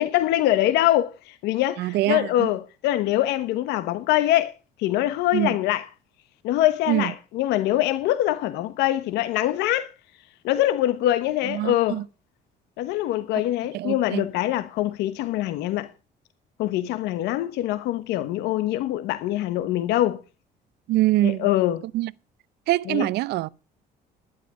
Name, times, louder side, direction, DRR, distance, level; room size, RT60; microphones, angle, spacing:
voice 1, 0.0-4.5 4.8-5.9 6.4-9.9 10.4-12.0 12.8-15.9 16.6-20.2 21.2-21.8 22.9-23.1, left 14 dB, 90° left, 1.2 m, -24 dB
voice 2, 1.8-2.5 5.3-5.5 6.9-7.1 11.5-12.0 13.7-14.2 20.9-21.4 21.9-22.1 22.7-23.5, right 16 dB, 80° right, 0.6 m, -24 dB
11.5 x 11.5 x 4.9 m
cardioid pair, 110°, 17 cm